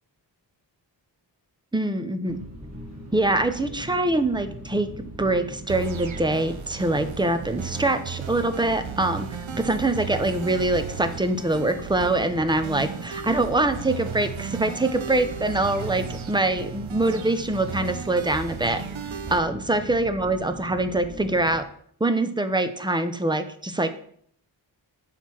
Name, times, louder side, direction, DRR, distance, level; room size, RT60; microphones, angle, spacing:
voice 1, 1.7-2.4 3.1-9.3 9.6-18.8 19.3-21.6 22.0-23.9, right 2 dB, 10° right, 9 dB, 0.6 m, -24 dB
sound 1, 2.2-21.6, equal, 35° right, 1.4 m, -40 dB
sound 2, 5.7-19.4, right 9 dB, 90° right, 0.7 m, -36 dB
6.5 x 5.8 x 4.6 m, 0.63 s
wide cardioid pair, 115°, 45 cm